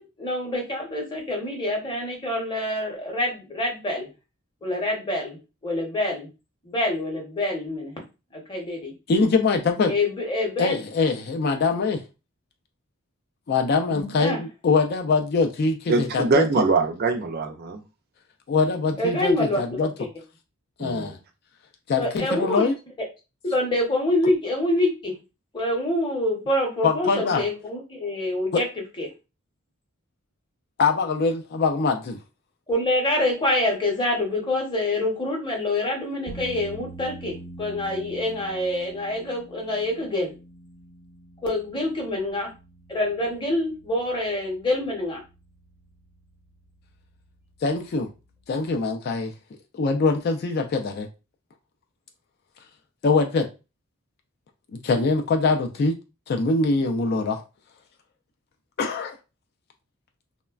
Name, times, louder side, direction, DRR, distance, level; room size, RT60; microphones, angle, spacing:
voice 1, 0.0-4.1 4.6-5.4 5.6-6.3 6.6-7.9 8.3-8.9 9.9-10.7 13.9-14.4 18.9-20.1 22.0-22.7 23.4-25.1 25.5-28.7 29.0-29.1 32.7-40.3 41.4-42.5 42.9-45.2, left 1 dB, 20° left, 0.7 m, -26 dB
voice 2, 9.1-9.9 10.6-12.0 13.5-16.4 18.5-19.9 20.8-21.2 21.9-22.7 26.8-27.4 30.8-32.2 47.6-48.1 48.5-49.3 49.7-51.1 53.0-53.5 54.8-56.0 56.3-57.4 58.8-59.1, left 4 dB, 45° left, 0.3 m, -23 dB
voice 3, 15.9-17.8 20.8-21.1, right 4 dB, 45° right, 0.4 m, -23 dB
sound 1, 36.3-48.8, right 2 dB, 80° left, 0.7 m, -46 dB
3.1 x 2.1 x 2.3 m
head